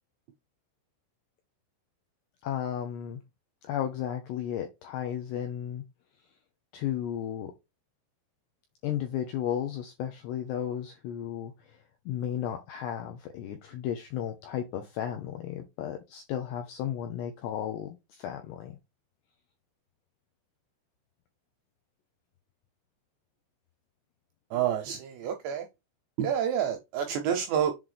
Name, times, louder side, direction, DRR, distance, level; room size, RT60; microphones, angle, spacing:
voice 1, 2.4-3.2 3.7-5.8 6.7-7.5 8.8-11.5 12.1-18.8, left 10 dB, 80° left, 2.5 m, -34 dB
voice 2, 24.5-25.7 26.2-27.7, right 9 dB, 80° right, 2.6 m, -28 dB
7.6 x 3.9 x 3.4 m
omnidirectional pair, 6.0 m